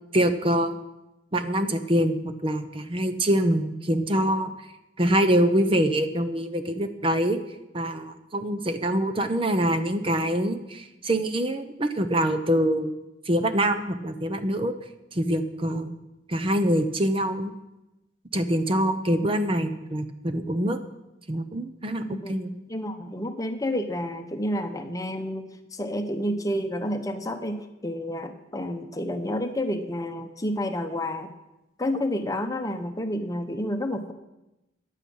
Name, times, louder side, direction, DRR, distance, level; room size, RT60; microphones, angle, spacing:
voice 1, 0.1-0.8 1.3-4.5 5.0-7.4 7.7-13.0 13.3-14.7 15.1-16.0 16.3-17.5 18.3-20.8 21.3-22.5, right 1 dB, 30° right, 9 dB, 0.7 m, -25 dB
voice 2, 22.0-22.4 22.7-25.5 25.7-31.3 31.8-34.1, left 1 dB, 20° left, 7 dB, 0.9 m, -30 dB
15.0 x 10.0 x 5.5 m, 0.95 s
head